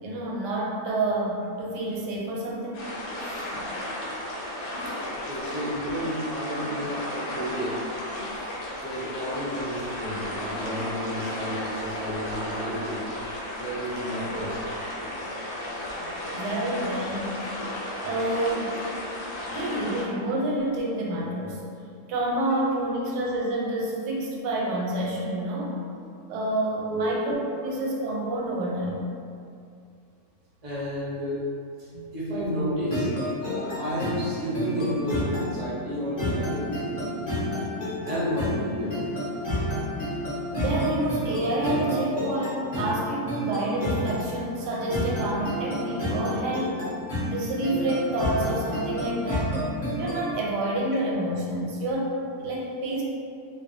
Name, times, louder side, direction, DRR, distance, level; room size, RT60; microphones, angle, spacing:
voice 1, 0.0-2.8 3.2-3.4 4.3-4.6 16.3-17.4 18.0-18.7 19.4-21.6 22.1-25.7 26.3-27.4 27.6-29.0 31.9-32.0 40.5-46.7 47.3-49.5 50.0-52.1 52.4-53.0, right 1 dB, 90° right, -3 dB, 1.2 m, -28 dB
sound 1, 2.7-20.1, left 1 dB, 75° left, 1.1 m, -34 dB
voice 2, 5.3-7.8 8.8-13.0 13.5-14.6 26.9-27.1 30.6-31.5 32.1-33.1 33.4-37.2 37.9-39.1 42.0-42.1, equal, 45° right, -9 dB, 0.4 m, -31 dB
sound 2, 32.9-50.3, left 1 dB, 40° left, 0.6 m, -30 dB
2.5 x 2.2 x 2.5 m, 2.4 s
omnidirectional pair, 1.7 m